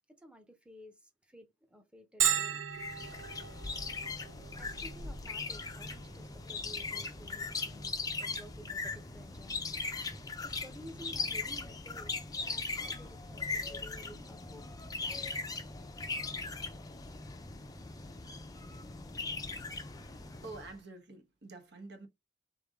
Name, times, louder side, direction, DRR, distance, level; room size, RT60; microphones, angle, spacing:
voice 1, 0.1-2.6 4.6-9.7 10.4-14.7 14.9-15.3 16.1-16.2, equal, 5° right, 0.8 m, -54 dB
Bell, 2.2-17.6, right 8 dB, 80° right, 0.5 m, -41 dB
sound 1, 2.7-20.8, left 4 dB, 20° left, 0.5 m, -39 dB
voice 2, 20.2-22.1, right 3 dB, 60° right, 1.2 m, -48 dB
3.7 x 3.5 x 3.6 m
head